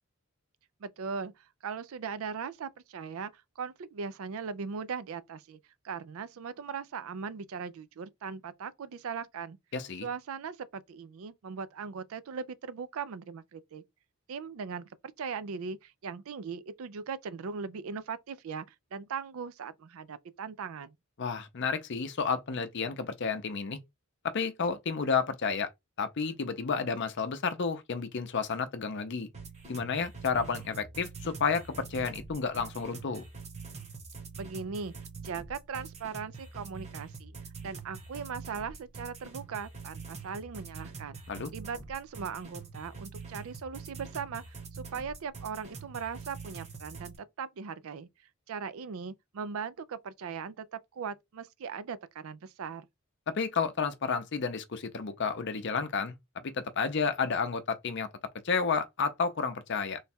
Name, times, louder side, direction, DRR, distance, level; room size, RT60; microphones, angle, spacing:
voice 1, 0.8-5.6 5.8-9.6 10.0-13.8 14.3-20.9 34.4-34.9 35.2-37.3 37.6-41.2 41.5-48.1 48.5-52.9, right 6 dB, 65° right, 0.4 m, -39 dB
voice 2, 9.7-10.1 21.2-23.8 24.2-25.7 26.0-29.3 29.7-33.2 41.3-41.5 53.3-56.1 56.4-58.1 58.4-60.0, left 5 dB, 50° left, 0.6 m, -31 dB
sound 1, 29.3-47.2, right 4 dB, 30° right, 1.0 m, -45 dB
3.2 x 2.3 x 4.2 m
head